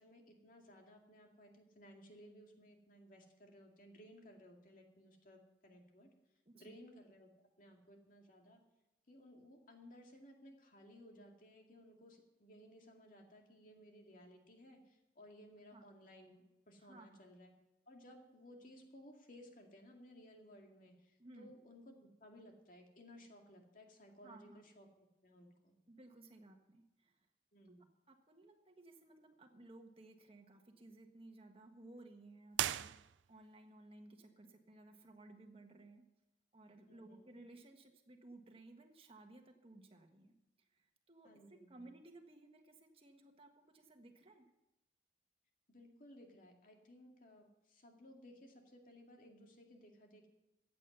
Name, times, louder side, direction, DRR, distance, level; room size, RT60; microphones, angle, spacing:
voice 1, 0.0-6.1 6.5-7.3 7.6-8.6 9.1-17.5 17.9-25.7 27.5-27.8 36.9-37.3 41.2-41.9 45.7-50.3, equal, 50° left, 2 dB, 2.2 m, -59 dB
voice 2, 6.4-6.8 15.7-15.8 16.8-17.2 21.2-21.5 24.2-24.6 25.9-27.2 28.1-36.0 36.5-44.5, right 2 dB, 30° right, 4 dB, 1.5 m, -58 dB
sound 1, 32.5-33.6, right 12 dB, 85° right, 0.4 m, -39 dB
14.5 x 8.6 x 6.8 m, 0.96 s
head